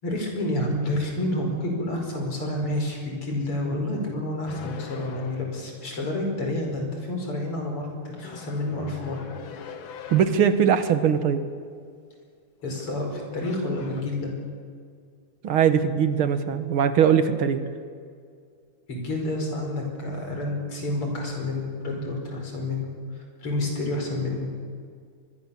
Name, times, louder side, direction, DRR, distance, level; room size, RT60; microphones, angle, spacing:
voice 1, 0.0-9.2 12.6-14.3 18.9-24.5, left 1 dB, 85° left, 1 dB, 5.9 m, -29 dB
sound 1, 4.5-5.7 8.2-10.5 12.6-13.0 13.4-14.0, left 6 dB, 65° left, 2.0 m, -42 dB
voice 2, 10.1-11.4 15.4-17.6, right 8 dB, 75° right, 10 dB, 2.2 m, -21 dB
25.5 x 21.5 x 7.2 m, 2.1 s
omnidirectional pair, 2.4 m